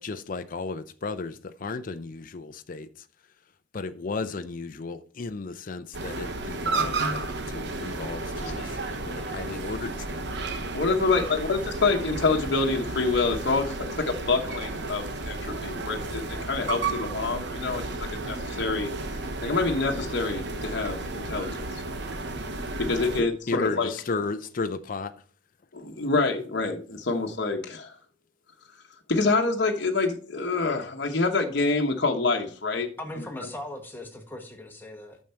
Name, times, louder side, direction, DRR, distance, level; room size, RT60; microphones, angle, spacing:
voice 1, 0.0-3.1 3.7-10.2 23.2-25.1, left 4 dB, 45° left, 0.5 m, -34 dB
sound 1, 5.9-23.2, right 3 dB, 60° right, 1.0 m, -33 dB
voice 2, 10.7-18.9 19.4-21.8 22.8-23.9 25.7-27.9 29.1-32.9 33.1-33.2, left 3 dB, 60° left, 1.1 m, -26 dB
voice 3, 33.0-35.2, left 1 dB, 10° left, 1.4 m, -39 dB
9.0 x 6.5 x 4.4 m
head